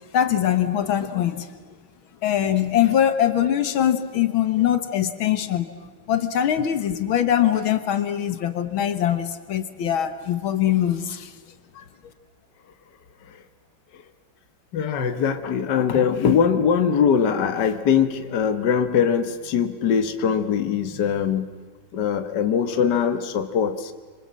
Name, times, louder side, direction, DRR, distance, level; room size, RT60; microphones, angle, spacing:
voice 1, 0.1-1.5 2.2-5.7 6.1-11.3, left 10 dB, 80° left, 10 dB, 2.0 m, -22 dB
voice 2, 14.7-21.5 21.9-23.9, left 7 dB, 60° left, 9 dB, 1.8 m, -22 dB
26.5 x 25.5 x 7.6 m, 1.6 s
omnidirectional pair, 2.2 m